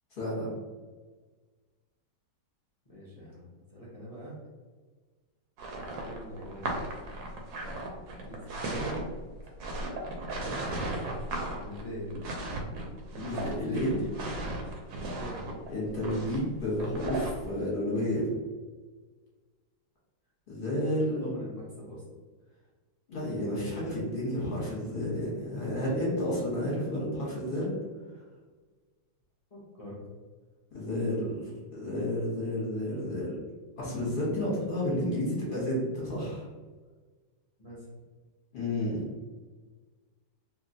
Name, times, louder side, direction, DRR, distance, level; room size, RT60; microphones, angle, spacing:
voice 1, 0.2-0.5 13.2-13.9 15.7-18.3 20.5-21.3 23.1-27.7 30.7-33.4 33.8-36.5 38.5-39.1, left 1 dB, 35° left, -6 dB, 0.9 m, -31 dB
voice 2, 2.9-4.4 5.9-6.8 8.2-9.0 9.4-9.5 10.3-10.9 11.6-12.2 13.0-13.3 13.6-14.1 15.0-15.6 20.8-22.0 29.5-30.0 37.6-37.9, equal, 60° left, -9 dB, 0.3 m, -42 dB
sound 1, 5.6-17.5, right 2 dB, 80° right, 1.3 m, -36 dB
3.0 x 2.8 x 2.6 m, 1.4 s
omnidirectional pair, 2.0 m